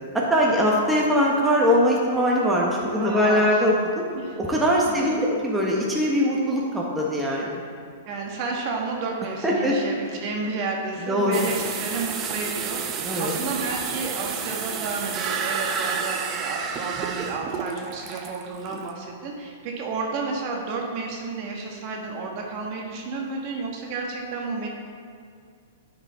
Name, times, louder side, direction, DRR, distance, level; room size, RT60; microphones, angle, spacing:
voice 1, 0.1-4.0 4.4-7.6 9.4-9.8 11.0-11.6 13.0-13.4, equal, 5° right, -4 dB, 1.1 m, -22 dB
voice 2, 2.9-3.6 4.1-4.4 4.9-5.2 8.0-24.7, right 4 dB, 45° right, 0 dB, 1.4 m, -31 dB
sound 1, 11.3-18.9, right 6 dB, 30° right, 0.7 m, -30 dB
9.4 x 5.2 x 4.2 m, 2.2 s
hypercardioid pair, 120°, 0 cm